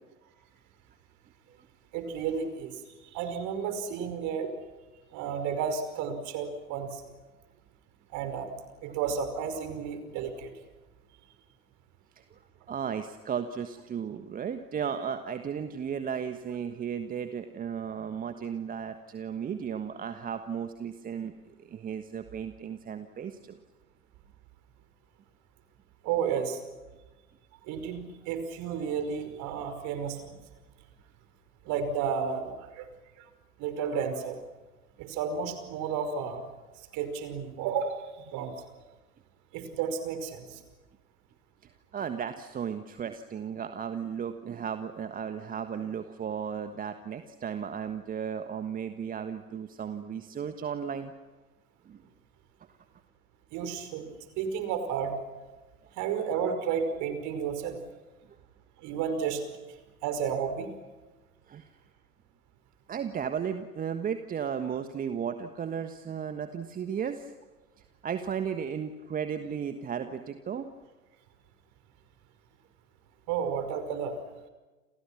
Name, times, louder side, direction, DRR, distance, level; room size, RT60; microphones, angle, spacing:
voice 1, 1.9-2.8 3.0-4.5 5.1-7.0 8.1-8.5 8.8-10.5 26.0-26.6 27.7-30.3 31.7-32.9 33.6-34.4 35.0-36.4 36.9-38.5 39.5-40.6 53.5-55.1 56.0-57.8 58.8-59.4 60.0-60.7 73.3-74.2, right 7 dB, 40° right, 9 dB, 5.3 m, -32 dB
voice 2, 12.7-21.3 21.7-23.6 41.9-51.1 51.9-52.0 61.5-61.7 62.9-67.3 68.0-70.7, right 7 dB, 20° right, 9 dB, 1.4 m, -35 dB
30.0 x 28.5 x 6.1 m, 1.2 s
figure-of-eight pair, 90°, 44 cm